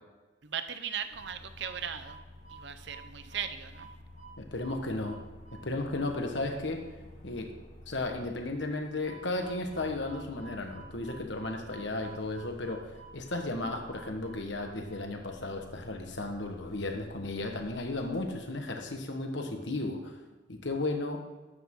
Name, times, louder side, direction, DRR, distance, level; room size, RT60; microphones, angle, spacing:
voice 1, 0.4-2.2 2.5-3.9, right 8 dB, 60° right, 10 dB, 0.8 m, -38 dB
sound 1, 1.1-18.6, right 1 dB, 40° left, 2.5 m, -51 dB
voice 2, 4.4-5.2 5.6-6.8 7.2-7.5 7.9-20.1 20.5-21.2, left 2 dB, 65° left, 3 dB, 1.5 m, -34 dB
12.5 x 10.0 x 3.8 m, 1.2 s
head